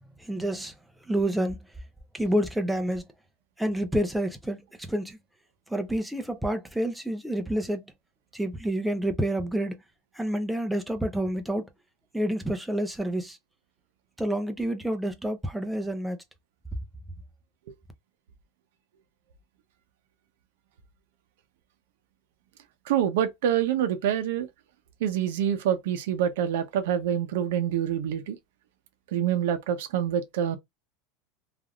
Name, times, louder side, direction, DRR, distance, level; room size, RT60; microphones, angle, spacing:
voice 1, 0.2-0.7 1.1-1.6 2.1-3.1 3.6-5.2 5.7-7.8 8.3-9.8 10.2-11.7 12.1-13.4 14.2-16.2, right 1 dB, ahead, 0.4 m, -28 dB
voice 2, 22.9-24.5 25.0-28.4 29.1-30.6, right 9 dB, 75° right, 0.6 m, -26 dB
3.3 x 2.3 x 2.3 m
supercardioid pair, 165°, 0 cm